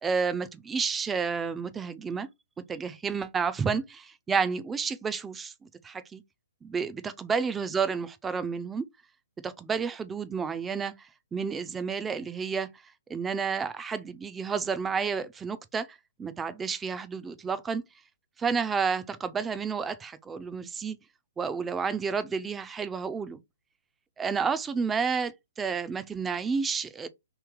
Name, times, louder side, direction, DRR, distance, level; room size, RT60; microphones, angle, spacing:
voice 1, 0.0-2.3 2.7-6.2 6.6-8.8 9.4-12.7 13.1-17.8 18.4-21.0 21.4-23.4 24.2-27.1, right 5 dB, 10° right, 0.4 m, -30 dB
3.0 x 2.8 x 3.6 m
hypercardioid pair, 135°, 0 cm